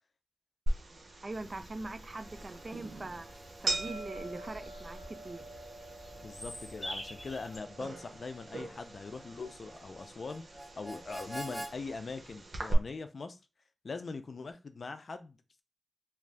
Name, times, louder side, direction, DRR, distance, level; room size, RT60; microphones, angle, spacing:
sound 1, 0.7-12.7, right 2 dB, 80° right, 0.7 m, -41 dB
voice 1, 1.2-5.5, right 2 dB, 45° right, 0.3 m, -42 dB
Bird vocalization bird call bird song, 1.3-7.6, equal, 20° left, 1.2 m, -48 dB
Harmonica, 2.2-11.7, right 1 dB, 5° right, 1.1 m, -50 dB
voice 2, 6.1-13.4 13.8-15.6, left 4 dB, 70° left, 0.4 m, -42 dB
2.5 x 2.3 x 3.2 m
cardioid pair, 60°, 0 cm